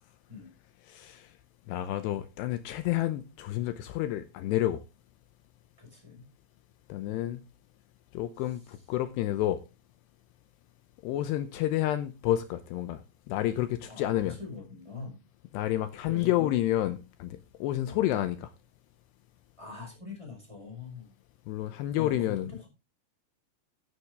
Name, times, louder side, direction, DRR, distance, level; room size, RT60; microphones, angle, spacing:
voice 1, 0.9-1.3 1.7-4.8 6.9-7.4 8.1-9.6 11.0-13.0 13.3-14.4 15.5-18.5 21.5-22.5, left 13 dB, 80° left, 2.7 m, -29 dB
voice 2, 5.8-6.2 13.9-15.2 16.1-16.5 17.9-18.0 19.6-21.1 21.9-22.7, left 5 dB, 5° right, 4.6 m, -43 dB
13.0 x 10.0 x 3.5 m
omnidirectional pair, 5.1 m